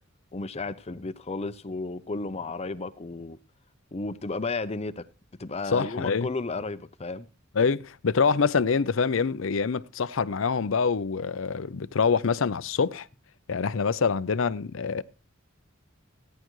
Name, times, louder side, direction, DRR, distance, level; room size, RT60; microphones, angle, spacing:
voice 1, 0.3-3.4 3.9-5.0 5.4-7.3, left 3 dB, 30° left, 0.6 m, -33 dB
voice 2, 5.7-6.3 7.5-13.1 13.5-15.0, left 5 dB, 75° left, 0.6 m, -25 dB
16.5 x 10.0 x 3.1 m
head